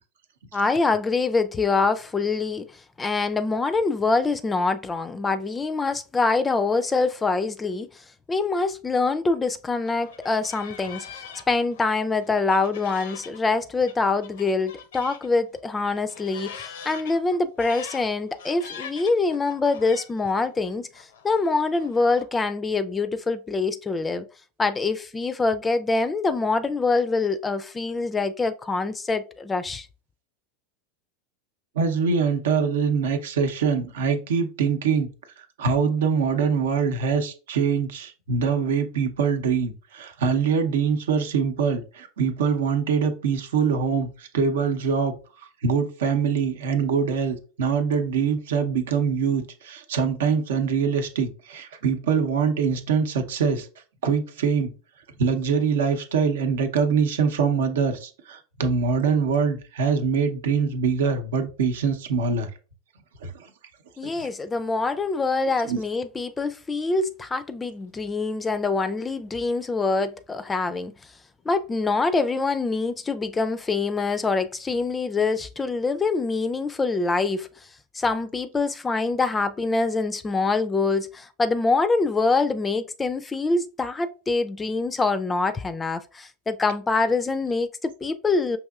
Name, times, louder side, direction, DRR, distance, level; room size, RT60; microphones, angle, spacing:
voice 1, 0.5-2.7 3.0-24.3 24.6-29.9 64.0-70.9 71.5-77.5 77.9-88.6, left 3 dB, 15° left, 0.4 m, -25 dB
sound 1, 9.9-15.3 15.5-22.3, left 7 dB, 80° left, 0.6 m, -43 dB
voice 2, 31.7-35.1 35.4-45.1 45.6-53.7 54.0-54.7 55.2-62.5 63.2-63.5 64.0-64.3 65.6-65.8, right 6 dB, 80° right, 0.7 m, -24 dB
5.4 x 2.8 x 2.3 m
hypercardioid pair, 95°, 0 cm